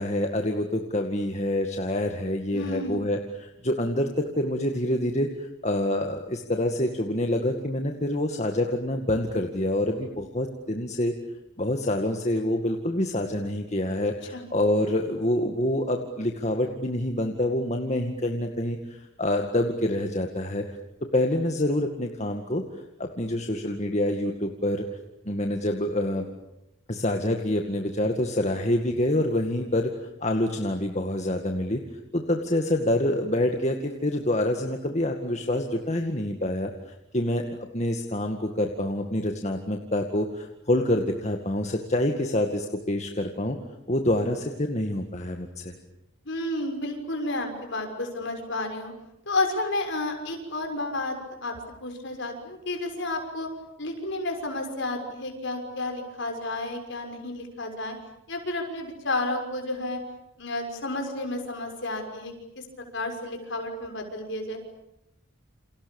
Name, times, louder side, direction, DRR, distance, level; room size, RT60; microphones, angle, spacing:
voice 1, 0.0-11.1 11.6-20.6 21.1-22.6 23.0-24.8 25.3-26.3 26.9-29.9 30.2-31.8 32.1-37.4 37.7-43.6 43.9-45.8, left 1 dB, 30° left, 3 dB, 2.0 m, -27 dB
voice 2, 2.5-3.0 14.3-14.4 46.2-48.9 49.3-53.5 53.8-58.0 58.3-60.0 60.4-62.7 62.9-64.6, left 2 dB, 55° left, 4 dB, 6.4 m, -31 dB
29.5 x 28.0 x 7.2 m, 0.87 s
head